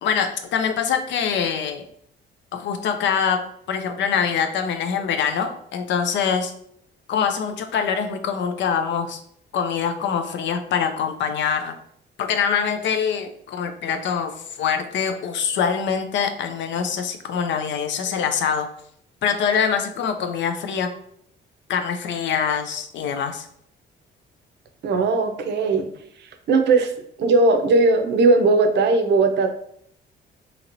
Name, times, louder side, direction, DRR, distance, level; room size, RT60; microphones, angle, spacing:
voice 1, 0.0-1.8 2.5-3.4 3.7-6.5 7.1-9.2 9.5-11.7 12.2-18.7 19.2-20.9 21.7-23.5, left 7 dB, 70° left, 7 dB, 0.5 m, -24 dB
voice 2, 24.8-25.9 26.5-26.9 27.2-29.5, right 3 dB, 60° right, 6 dB, 0.5 m, -18 dB
2.9 x 2.9 x 2.5 m, 0.69 s
cardioid pair, 90°, 20 cm